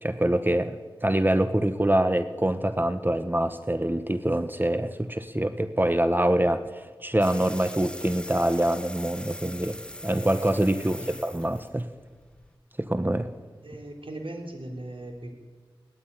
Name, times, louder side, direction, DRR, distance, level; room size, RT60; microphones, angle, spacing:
voice 1, 0.0-9.8 10.0-11.9 12.8-13.3, right 1 dB, 20° right, 10 dB, 1.1 m, -25 dB
sound 1, 7.2-12.5, left 1 dB, 10° left, 1.7 m, -42 dB
voice 2, 10.8-11.2 13.6-15.3, right 1 dB, 70° right, 2 dB, 3.5 m, -39 dB
18.5 x 14.5 x 9.8 m, 1.4 s
cardioid pair, 40°, 9 cm